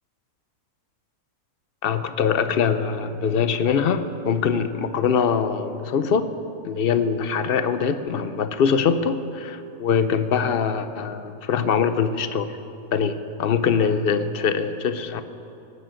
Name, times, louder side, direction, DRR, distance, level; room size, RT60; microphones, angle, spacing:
voice 1, 1.8-6.3 6.6-12.6 12.9-15.2, left 6 dB, 55° left, 11 dB, 0.7 m, -23 dB
17.5 x 7.2 x 8.9 m, 2.9 s
omnidirectional pair, 1.6 m